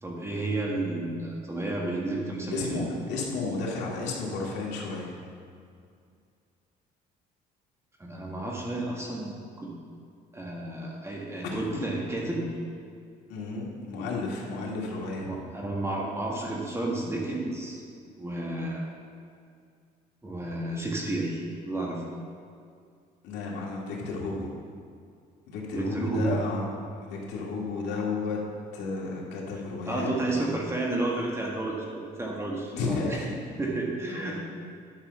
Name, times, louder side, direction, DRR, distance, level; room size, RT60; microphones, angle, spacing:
voice 1, 0.0-2.8 8.0-9.7 10.3-12.5 15.2-17.8 18.2-18.9 20.2-21.4 21.7-22.0 25.7-26.4 29.9-33.2 33.6-34.4, right 2 dB, 15° right, -3 dB, 1.7 m, -31 dB
voice 2, 2.5-5.1 11.4-11.6 13.3-15.3 23.2-24.5 25.5-26.6 27.0-28.4 28.7-30.1 32.7-33.3 34.1-34.4, left 3 dB, 90° left, -3 dB, 2.2 m, -32 dB
10.5 x 5.6 x 6.9 m, 2.3 s
cardioid pair, 110°, 17 cm